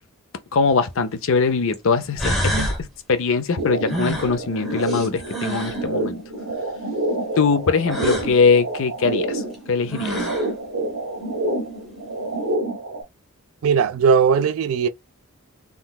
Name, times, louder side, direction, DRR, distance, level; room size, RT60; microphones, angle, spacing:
voice 1, 0.5-6.2 7.4-9.4 9.7-10.3, left 5 dB, 65° left, 0.6 m, -21 dB
sound 1, 0.7-0.8 1.7-1.8 2.2-2.8 3.9-5.8 7.9-8.3 9.5-9.6 9.9-10.5, right 1 dB, ahead, 1.1 m, -27 dB
sound 2, 3.6-13.0, right 1 dB, 80° right, 1.0 m, -28 dB
voice 2, 13.6-14.9, right 6 dB, 65° right, 0.4 m, -18 dB
3.7 x 2.3 x 2.3 m
head